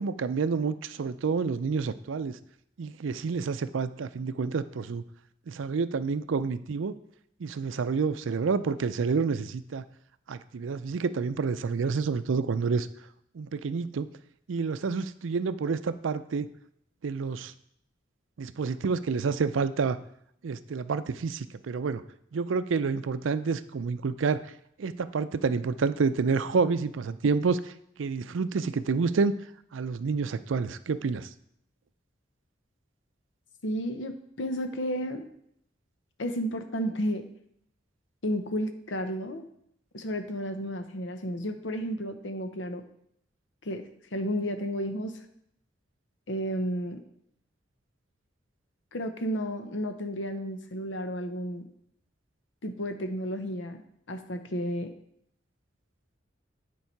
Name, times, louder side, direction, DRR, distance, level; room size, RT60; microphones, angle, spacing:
voice 1, 0.0-2.4 2.8-5.0 5.5-7.0 7.4-9.8 10.3-12.9 13.3-14.1 14.5-16.5 17.0-17.5 18.4-20.0 20.4-22.0 22.3-24.4 24.8-27.7 28.0-29.3 29.7-31.3, right 5 dB, 90° right, 13 dB, 0.4 m, -28 dB
voice 2, 33.6-35.3 36.2-37.3 38.2-39.5 39.9-42.8 43.6-43.8 44.1-45.2 46.3-47.0 48.9-51.7 52.6-53.8 54.1-54.9, equal, 80° left, 7 dB, 0.9 m, -32 dB
9.8 x 4.7 x 4.5 m, 0.72 s
head